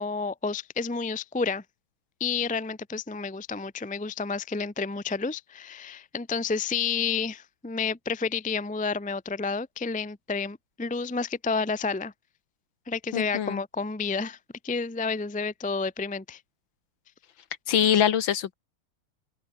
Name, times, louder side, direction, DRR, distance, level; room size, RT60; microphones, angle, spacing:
voice 1, 0.0-1.6 2.2-12.1 12.9-14.4 14.6-16.4, left 5 dB, 10° left, 0.5 m, -30 dB
voice 2, 13.1-13.6 17.7-18.5, left 9 dB, 65° left, 1.9 m, -23 dB
open air
omnidirectional pair, 2.4 m